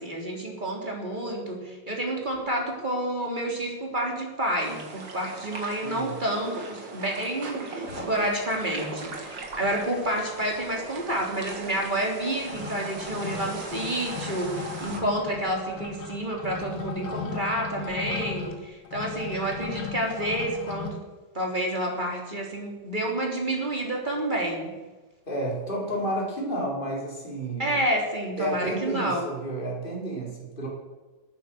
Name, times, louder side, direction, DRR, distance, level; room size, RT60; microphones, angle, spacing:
voice 1, 0.0-21.0 21.3-24.7 27.6-29.3, right 1 dB, 25° right, 0 dB, 3.4 m, -29 dB
sound 1, 4.6-15.0, right 3 dB, 80° right, 3.1 m, -39 dB
voice 2, 5.8-6.1 25.3-27.8 28.4-30.7, right 1 dB, 25° left, -2 dB, 4.5 m, -31 dB
sound 2, 7.8-8.7 9.1-9.2 9.4-10.1 10.3-20.9, left 6 dB, 85° left, 2.6 m, -38 dB
17.5 x 9.2 x 7.6 m, 1.2 s
omnidirectional pair, 2.0 m